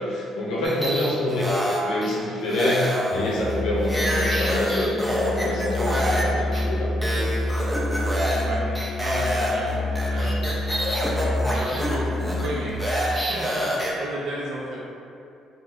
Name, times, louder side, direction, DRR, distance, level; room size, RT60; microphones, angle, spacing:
voice 1, 0.0-7.3, left 1 dB, 90° left, -5 dB, 0.7 m, -27 dB
voice 2, 0.5-1.0 8.4-8.7 9.0-10.6 11.5-13.7 14.0-14.8, equal, 75° right, -6 dB, 0.8 m, -33 dB
sound 1, 0.6-2.1 2.5-6.2 6.5-6.6 7.0-8.5 8.7-13.9, equal, 5° right, 0.5 m, -27 dB
Musical instrument, 3.1-13.0, left 1 dB, 45° left, 0.4 m, -28 dB
2.6 x 2.2 x 3.7 m, 2.6 s
cardioid pair, 110°, 0 cm